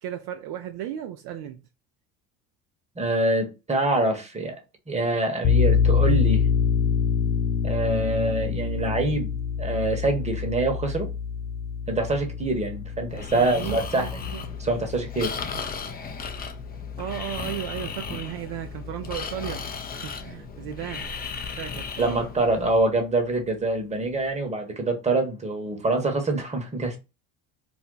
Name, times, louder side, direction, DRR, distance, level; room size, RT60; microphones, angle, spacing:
voice 1, 0.0-1.6 13.3-14.6 17.0-21.2 21.6-22.3, right 11 dB, 60° right, 0.5 m, -35 dB
voice 2, 3.0-4.5 4.9-6.4 7.6-9.3 9.6-11.1 11.9-14.1 14.6-15.3 22.0-27.0, right 2 dB, 15° right, 1.0 m, -25 dB
sound 1, 5.4-16.7, left 7 dB, 40° left, 1.1 m, -26 dB
Breathing, 13.1-22.8, left 6 dB, 20° left, 0.4 m, -35 dB
2.5 x 2.1 x 3.8 m
hypercardioid pair, 80°, 44 cm